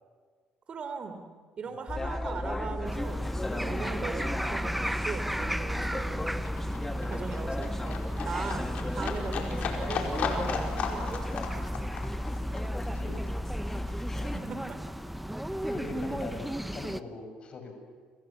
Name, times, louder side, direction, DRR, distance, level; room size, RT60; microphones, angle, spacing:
voice 1, 0.7-1.2 1.6-3.2 3.6-6.4 7.0-8.6 8.9-11.3 14.3-14.8, right 5 dB, 40° right, 8 dB, 3.6 m, -39 dB
sound 1, 1.9-14.4, left 1 dB, 15° left, 2.1 m, -34 dB
sound 2, 2.8-17.0, equal, 5° right, 1.1 m, -36 dB
Livestock farm animals working animals, 3.6-14.6 14.9-15.9 16.2-16.3, left 6 dB, 60° left, 4.9 m, -37 dB
voice 2, 12.8-13.2 14.0-14.1 15.7-17.7, left 3 dB, 40° left, 5 dB, 7.0 m, -42 dB
30.0 x 25.5 x 7.5 m, 1.6 s
cardioid pair, 115°, 3 cm